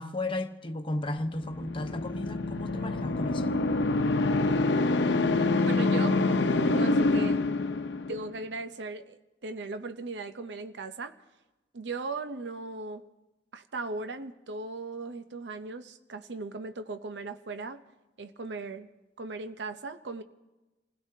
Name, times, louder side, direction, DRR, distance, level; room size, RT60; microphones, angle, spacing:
voice 1, 0.0-3.5, left 1 dB, 30° left, 0.9 m, -34 dB
sound 1, 1.3-8.3, left 2 dB, 80° left, 0.8 m, -26 dB
voice 2, 5.7-6.3 6.7-7.4 8.1-11.1 11.7-13.0 13.5-17.8 18.2-18.9 19.2-20.2, right 3 dB, 75° right, 0.7 m, -38 dB
28.5 x 16.5 x 2.8 m
head